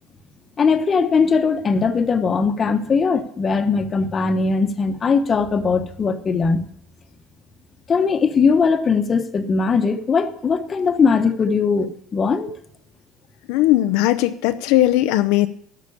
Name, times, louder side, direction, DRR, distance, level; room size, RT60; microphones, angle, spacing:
voice 1, 0.6-6.7 7.9-12.5, left 5 dB, 30° left, 9 dB, 1.1 m, -19 dB
voice 2, 13.5-15.5, left 15 dB, 80° left, 10 dB, 0.6 m, -18 dB
12.0 x 5.9 x 8.5 m, 0.68 s
cardioid pair, 120°, 0 cm